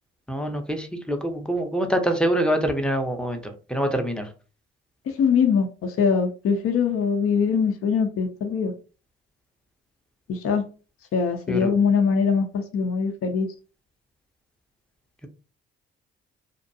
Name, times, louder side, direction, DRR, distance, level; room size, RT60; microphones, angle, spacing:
voice 1, 0.3-4.3 11.5-11.7, right 1 dB, 5° left, 5 dB, 0.6 m, -25 dB
voice 2, 5.1-8.7 10.3-10.6 11.1-13.5, left 6 dB, 50° left, 5 dB, 0.5 m, -22 dB
2.5 x 2.1 x 2.6 m, 0.35 s
hypercardioid pair, 45°, 29 cm